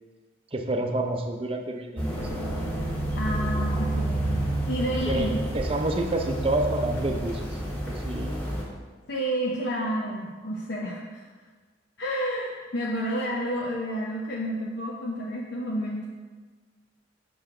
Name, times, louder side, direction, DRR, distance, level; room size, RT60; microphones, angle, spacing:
voice 1, 0.5-2.3 5.0-5.3 5.5-8.5, right 2 dB, 30° right, 4 dB, 0.6 m, -29 dB
sound 1, 2.0-8.6, right 1 dB, 10° left, 1.3 m, -29 dB
voice 2, 3.1-5.4 9.1-11.3 12.0-16.1, equal, 65° left, -4 dB, 0.7 m, -30 dB
6.3 x 6.2 x 3.8 m, 1.4 s
head